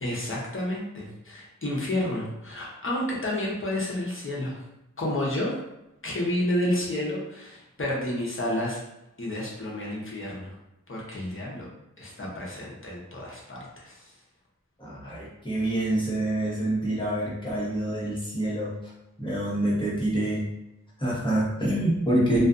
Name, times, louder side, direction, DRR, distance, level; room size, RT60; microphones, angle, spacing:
voice 1, 0.0-4.6 5.0-5.6 6.0-8.8 9.2-10.5 10.9-11.7 12.0-14.0, left 1 dB, 40° left, -4 dB, 0.7 m, -30 dB
voice 2, 14.8-18.7 19.2-20.4 21.0-22.5, right 1 dB, 15° left, -7 dB, 0.9 m, -26 dB
2.4 x 2.3 x 2.4 m, 0.91 s
wide cardioid pair, 80°, 32 cm